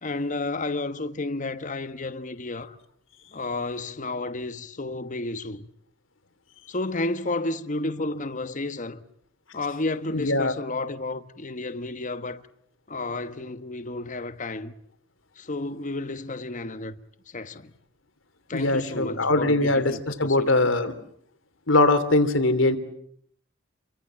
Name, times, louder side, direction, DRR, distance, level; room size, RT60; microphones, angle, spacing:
voice 1, 0.0-2.8 3.3-5.7 6.7-9.0 9.5-12.5 12.9-14.7 15.4-17.0 17.3-17.7 18.5-20.7, left 2 dB, 40° left, 1.2 m, -32 dB
voice 2, 10.1-10.5 18.5-20.9 21.7-22.8, left 2 dB, 80° left, 3.1 m, -21 dB
29.5 x 24.5 x 7.6 m
head